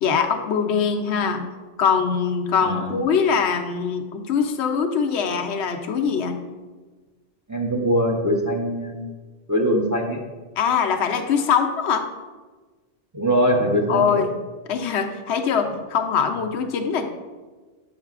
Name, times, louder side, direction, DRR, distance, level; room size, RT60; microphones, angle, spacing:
voice 1, 0.0-6.4 10.6-12.0 13.9-14.3 14.7-17.1, left 6 dB, 90° left, 5 dB, 0.9 m, -22 dB
voice 2, 2.6-3.0 7.5-9.1 9.5-10.2 13.1-14.3, equal, 25° right, -1 dB, 0.4 m, -22 dB
7.3 x 5.6 x 2.4 m, 1.3 s
omnidirectional pair, 1.1 m